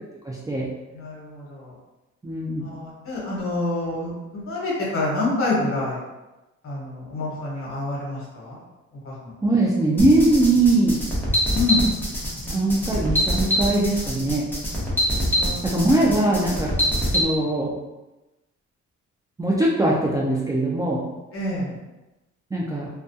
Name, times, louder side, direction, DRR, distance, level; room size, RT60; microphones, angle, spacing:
voice 1, 0.2-0.7 2.2-2.7 9.4-11.0 12.5-14.5 15.6-16.7 17.0-17.7 19.4-21.0 22.5-22.9, right 2 dB, 10° right, -5 dB, 0.3 m, -21 dB
voice 2, 0.9-1.7 2.6-6.0 6.6-8.6 9.0-9.3 11.5-11.9 15.4-15.7 16.6-16.7 21.3-21.7, left 2 dB, 45° left, -5 dB, 1.1 m, -27 dB
sound 1, 10.0-17.2, equal, 5° left, 0.8 m, -24 dB
2.2 x 2.2 x 2.6 m, 1.0 s
cardioid pair, 90°, 30 cm